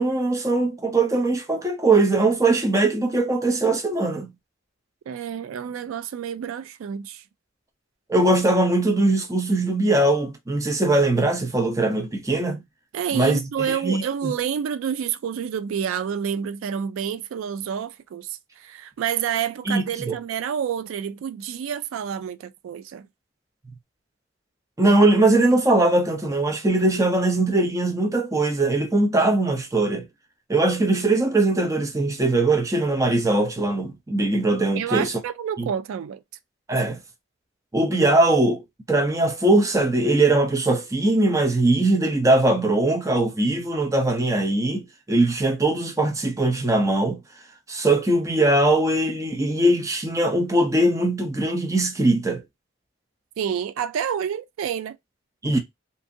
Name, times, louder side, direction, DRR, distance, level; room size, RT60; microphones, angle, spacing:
voice 1, 0.0-4.3 8.1-12.6 13.1-14.3 19.7-20.2 24.8-30.1 30.5-35.1 35.6-35.7 36.7-37.0 37.7-38.6 38.9-47.2 47.7-52.4 55.4-55.6, right 2 dB, 15° right, 0.5 m, -21 dB
voice 2, 5.1-7.2 12.9-23.1 34.7-36.2 53.4-55.0, right 8 dB, 90° right, 0.3 m, -29 dB
2.7 x 2.5 x 2.6 m
head